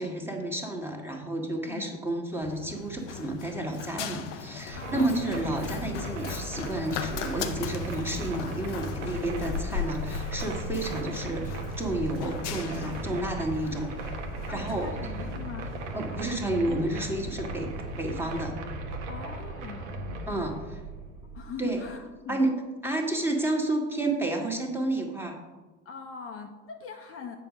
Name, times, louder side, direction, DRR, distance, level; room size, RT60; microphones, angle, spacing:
voice 1, 0.0-13.9 14.5-14.9 15.9-17.7 18.0-18.6 20.3-20.5 21.6-21.8 22.3-22.5 22.8-25.4, right 2 dB, 5° right, 1 dB, 1.7 m, -31 dB
Run, 2.4-18.5, left 7 dB, 75° left, 0.8 m, -39 dB
voice 2, 4.7-5.4 14.5-15.7 19.1-20.6 21.2-22.5 25.8-27.4, left 6 dB, 40° left, 3 dB, 0.9 m, -41 dB
sound 1, 4.7-22.0, right 2 dB, 75° right, 1.3 m, -37 dB
7.7 x 4.6 x 6.3 m, 1.2 s
hypercardioid pair, 75°, 36 cm